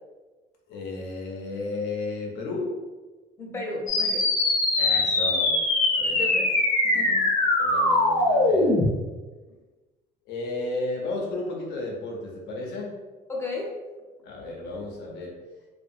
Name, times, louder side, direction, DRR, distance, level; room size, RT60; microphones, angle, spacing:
voice 1, 0.7-2.7 4.8-5.6 6.0-6.2 7.6-8.8 10.3-12.9 14.2-15.4, left 2 dB, 80° left, 0 dB, 0.7 m, -33 dB
voice 2, 3.4-4.3 6.2-6.5 6.8-7.3 13.3-13.7, left 2 dB, 15° left, -3 dB, 0.7 m, -33 dB
sound 1, 3.9-8.9, left 2 dB, 50° left, 0.8 m, -22 dB
2.6 x 2.4 x 2.5 m, 1.3 s
cardioid pair, 110°, 17 cm